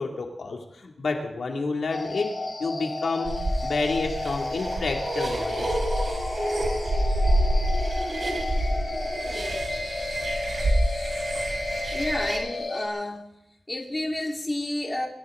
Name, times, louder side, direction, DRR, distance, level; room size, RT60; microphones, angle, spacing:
voice 1, 0.0-3.3 3.6-5.8, left 3 dB, 85° left, 2 dB, 2.5 m, -29 dB
sound 1, 1.9-12.9, left 2 dB, 60° left, 4.5 m, -33 dB
sound 2, 3.3-12.4, right 1 dB, 50° right, 3.2 m, -27 dB
voice 2, 11.9-13.2 13.7-15.1, left 1 dB, 20° left, 1 dB, 2.3 m, -30 dB
25.5 x 14.5 x 3.9 m, 0.84 s
wide cardioid pair, 135°, 0 cm